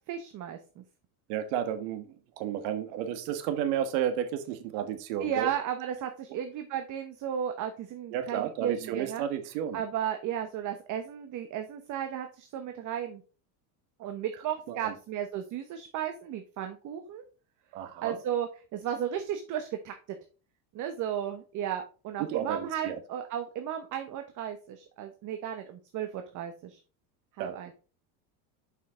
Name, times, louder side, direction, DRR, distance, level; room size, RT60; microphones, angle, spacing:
voice 1, 0.1-0.8 5.2-9.2 9.7-13.2 14.0-17.2 18.0-19.9 20.7-26.8 27.4-27.7, right 9 dB, 40° right, 7 dB, 1.0 m, -34 dB
voice 2, 1.3-2.1 2.4-5.5 6.3-6.4 8.1-9.8 14.7-15.0 17.7-18.2 22.2-23.0 27.4-27.5, right 9 dB, 70° right, 9 dB, 1.5 m, -32 dB
7.3 x 5.7 x 3.7 m, 0.36 s
supercardioid pair, 130°, 45 cm